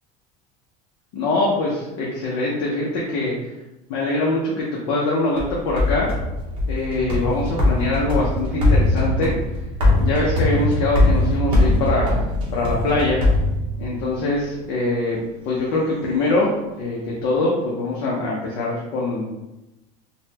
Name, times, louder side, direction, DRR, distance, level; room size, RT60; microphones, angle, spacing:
voice 1, 1.1-3.3 3.9-6.1 6.7-9.3 10.0-12.2 12.5-13.2 13.8-15.2 15.4-19.4, left 2 dB, 45° left, -4 dB, 0.5 m, -23 dB
sound 1, 5.4-14.1, left 1 dB, 25° right, 0.7 m, -21 dB
3.8 x 2.1 x 2.7 m, 0.97 s
cardioid pair, 175°, 20 cm